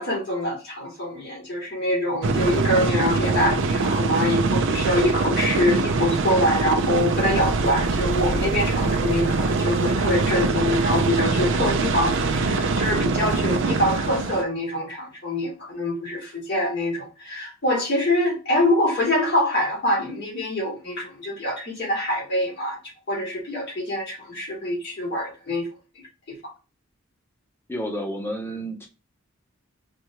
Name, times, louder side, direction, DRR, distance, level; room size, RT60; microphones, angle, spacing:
voice 1, 0.0-22.8 23.1-25.7 26.3-26.4, left 1 dB, 55° left, 2.4 m, -25 dB
sound 1, 2.2-14.4, right 3 dB, 65° right, 0.5 m, -23 dB
voice 2, 27.7-28.9, equal, 10° left, 0.8 m, -30 dB
5.2 x 2.3 x 3.1 m
head